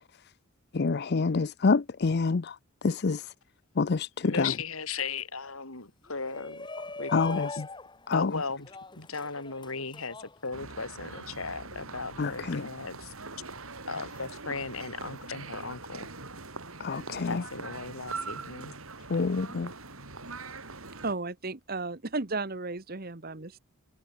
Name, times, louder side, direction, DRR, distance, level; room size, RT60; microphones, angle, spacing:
voice 1, 0.7-3.3 3.8-4.5 7.1-7.7 8.1-8.4 12.2-12.7 16.8-17.4 19.1-19.7, left 4 dB, 50° left, 0.5 m, -27 dB
voice 2, 4.2-7.5 8.1-8.7 9.0-13.1 13.9-16.1 17.2-18.7, left 4 dB, 75° left, 3.9 m, -36 dB
Shout, 6.1-11.2, left 3 dB, 20° left, 2.2 m, -43 dB
sound 1, 10.5-21.1, right 4 dB, 75° right, 5.2 m, -42 dB
voice 3, 20.8-23.6, right 3 dB, 45° right, 1.3 m, -34 dB
head